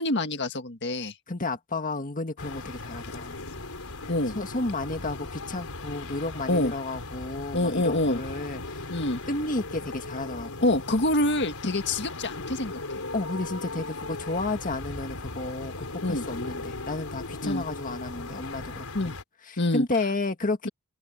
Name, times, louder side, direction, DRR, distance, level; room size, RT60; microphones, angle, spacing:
voice 1, 0.0-1.1 4.1-4.4 6.5-6.7 7.5-8.2 8.9-9.2 10.6-13.0 16.0-16.3 17.4-17.6 18.9-19.2 19.6-19.9, left 1 dB, 55° left, 1.8 m, -26 dB
voice 2, 1.3-3.4 4.3-8.9 9.3-10.7 13.1-19.1 19.4-20.7, left 2 dB, 40° left, 1.8 m, -32 dB
sound 1, 2.4-19.2, left 2 dB, 85° left, 4.3 m, -38 dB
head